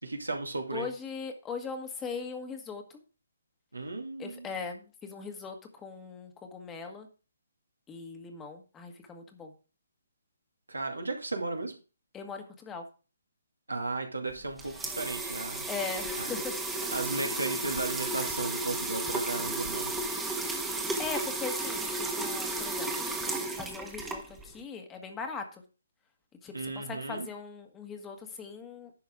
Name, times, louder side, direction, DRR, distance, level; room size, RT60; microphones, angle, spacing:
voice 1, 0.0-0.9 3.7-4.5 10.7-11.8 13.7-15.6 16.2-16.3 16.9-19.9 26.5-27.3, right 3 dB, 85° right, 2 dB, 2.4 m, -35 dB
voice 2, 0.7-3.0 4.2-7.1 7.9-9.5 12.1-12.8 15.7-16.9 20.7-23.1 23.6-25.6 26.4-28.9, left 5 dB, 15° left, 4 dB, 1.6 m, -40 dB
sound 1, 14.3-24.6, right 2 dB, 5° right, 1.4 m, -33 dB
11.0 x 6.5 x 3.7 m, 0.33 s
figure-of-eight pair, 140°, 0 cm